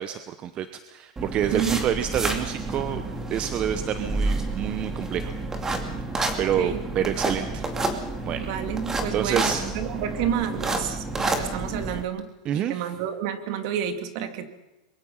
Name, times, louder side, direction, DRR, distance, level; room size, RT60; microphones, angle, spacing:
voice 1, 0.0-3.0 3.3-6.0 6.4-7.6 8.3-8.5 9.1-9.6 12.4-12.8, right 10 dB, 30° right, 10 dB, 0.9 m, -28 dB
sound 1, 1.2-12.0, right 2 dB, 15° right, 2.4 m, -29 dB
voice 2, 1.5-1.8 6.6-6.8 8.4-12.3 12.5-14.5, right 9 dB, 50° right, 8 dB, 2.5 m, -30 dB
22.5 x 22.5 x 5.6 m, 1.0 s
supercardioid pair, 145°, 4 cm